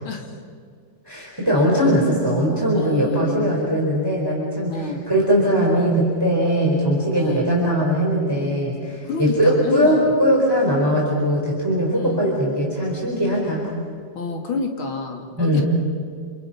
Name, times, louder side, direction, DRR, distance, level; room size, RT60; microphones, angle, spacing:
voice 1, 0.0-0.4 2.7-3.6 4.7-5.0 7.1-7.5 9.0-10.1 11.9-12.2 14.1-15.6, left 3 dB, 90° left, 2 dB, 3.4 m, -28 dB
voice 2, 1.1-4.8 5.1-13.7 15.4-15.6, equal, 10° right, -4 dB, 4.5 m, -20 dB
28.5 x 28.5 x 6.0 m, 2.1 s
omnidirectional pair, 2.2 m